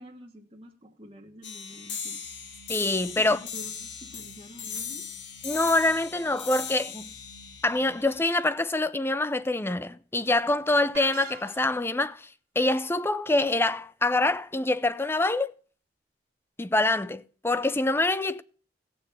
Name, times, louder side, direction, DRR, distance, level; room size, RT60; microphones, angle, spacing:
voice 1, 0.0-2.2 3.2-5.1, equal, 30° right, 1.4 m, -47 dB
sound 1, 1.4-8.4, left 7 dB, 85° left, 1.4 m, -38 dB
sound 2, 2.2-8.2, right 4 dB, 80° right, 1.9 m, -55 dB
voice 2, 2.7-3.4 5.4-7.1 7.6-12.3 12.6-15.5 16.6-18.4, left 2 dB, 15° left, 0.5 m, -25 dB
sound 3, 10.9-12.0, right 5 dB, 60° right, 1.4 m, -44 dB
17.5 x 7.0 x 3.4 m
head